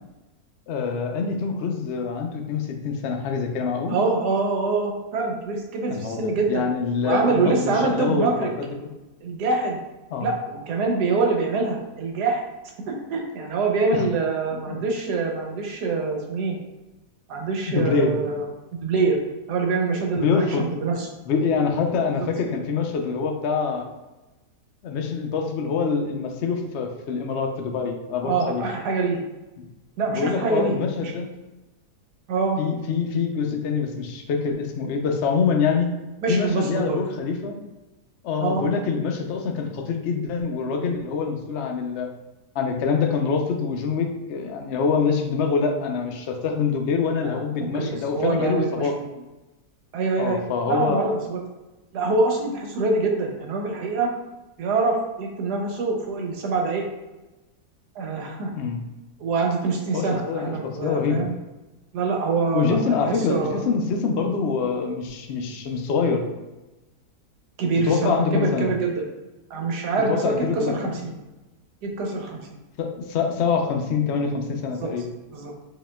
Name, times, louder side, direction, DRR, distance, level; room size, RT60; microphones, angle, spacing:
voice 1, 0.7-4.0 5.9-8.7 10.1-10.3 13.9-14.0 14.7-14.8 17.7-18.1 20.1-20.8 21.3-23.9 24.8-28.6 29.6-29.7 30.1-31.3 32.6-35.9 36.3-37.6 38.2-42.1 42.5-49.2 50.2-51.1 58.5-58.8 59.9-61.3 62.5-66.2 67.8-68.7 70.1-71.0 72.8-75.0, left 5 dB, 70° left, 3 dB, 0.6 m, -25 dB
voice 2, 3.9-6.6 7.0-8.5 9.2-9.8 10.2-12.4 12.9-16.6 17.3-18.5 18.7-19.2 19.5-21.1 22.2-22.3 28.2-29.2 30.0-30.8 31.0-31.1 32.3-32.6 36.2-37.0 38.4-38.7 47.2-48.9 49.9-50.4 50.7-51.4 51.9-54.1 54.6-56.8 57.9-58.5 59.2-61.3 61.9-63.7 67.6-69.0 69.5-71.1 71.8-72.5 74.8-74.9 75.3-75.5, right 3 dB, 85° right, 1 dB, 1.3 m, -25 dB
4.9 x 2.8 x 2.2 m, 1.1 s
omnidirectional pair, 1.7 m